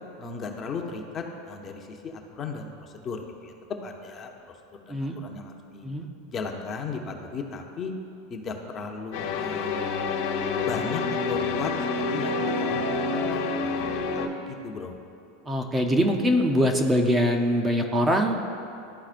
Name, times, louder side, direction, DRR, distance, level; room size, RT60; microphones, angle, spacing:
voice 1, 0.2-3.5 3.8-4.3 4.9-5.9 6.3-7.9 8.3-9.8 10.6-11.7 12.0-13.9 14.1-15.0, left 4 dB, 30° left, 2 dB, 0.6 m, -36 dB
sound 1, 9.1-14.3, left 4 dB, 75° left, 1.1 m, -27 dB
voice 2, 15.5-18.4, equal, 15° right, 3 dB, 0.6 m, -23 dB
12.0 x 4.1 x 2.5 m, 2.6 s
supercardioid pair, 130°, 0 cm